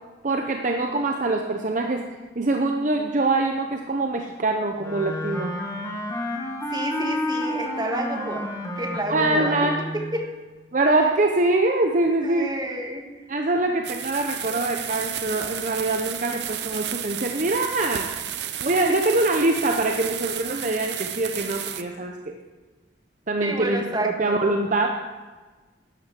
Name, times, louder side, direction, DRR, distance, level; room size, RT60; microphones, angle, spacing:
voice 1, 0.2-2.0 2.4-5.5 9.1-9.8 10.7-12.5 13.3-18.1 18.6-22.4 23.3-25.0, right 2 dB, 45° right, 3 dB, 0.8 m, -24 dB
Wind instrument woodwind instrument, 4.8-10.1, left 1 dB, 20° left, 1.9 m, -30 dB
voice 2, 6.7-8.5 8.8-10.3 12.2-13.3 14.5-14.6 18.7-19.0 23.4-24.4, right 1 dB, 25° right, 2 dB, 1.6 m, -30 dB
sound 1, 13.8-21.8, right 10 dB, 75° right, 0.8 m, -32 dB
12.0 x 9.7 x 6.1 m, 1.3 s
head